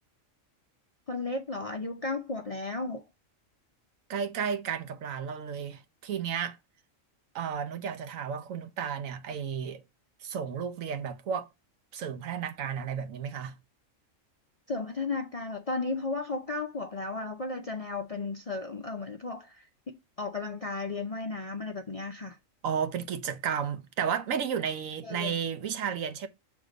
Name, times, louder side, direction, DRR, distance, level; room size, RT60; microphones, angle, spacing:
voice 1, 1.1-3.0 14.7-22.4 25.0-25.4, left 3 dB, 45° left, 0.5 m, -34 dB
voice 2, 4.1-6.6 7.3-9.8 10.2-11.5 11.9-13.5 22.6-26.3, right 7 dB, 80° right, 1.2 m, -33 dB
6.6 x 3.6 x 4.9 m
omnidirectional pair, 1.4 m